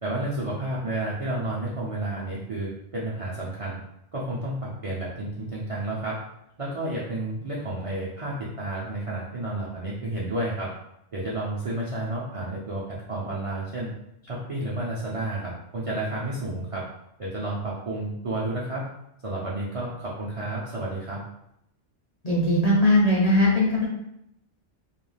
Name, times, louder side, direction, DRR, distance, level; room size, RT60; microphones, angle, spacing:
voice 1, 0.0-3.8 4.1-6.2 6.6-10.7 11.1-13.9 14.2-16.8 17.2-18.9 19.2-21.2, right 1 dB, 60° right, -6 dB, 0.3 m, -31 dB
voice 2, 22.2-23.9, left 1 dB, 50° left, -5 dB, 0.5 m, -20 dB
2.4 x 2.2 x 3.2 m, 0.79 s
omnidirectional pair, 1.2 m